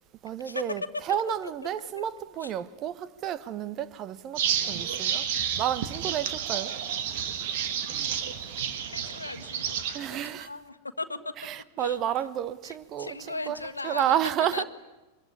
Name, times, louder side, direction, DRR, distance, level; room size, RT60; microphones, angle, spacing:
voice 1, 0.2-5.3 5.6-6.7 9.9-10.5 11.4-14.6, right 10 dB, 35° right, 1.0 m, -31 dB
sound 1, 4.4-10.0, right 8 dB, 50° right, 2.0 m, -30 dB
voice 2, 8.6-11.3 11.8-12.0 12.6-14.1 14.5-14.6, left 3 dB, 80° left, 1.5 m, -38 dB
25.0 x 22.5 x 9.8 m
figure-of-eight pair, 90°, 0 cm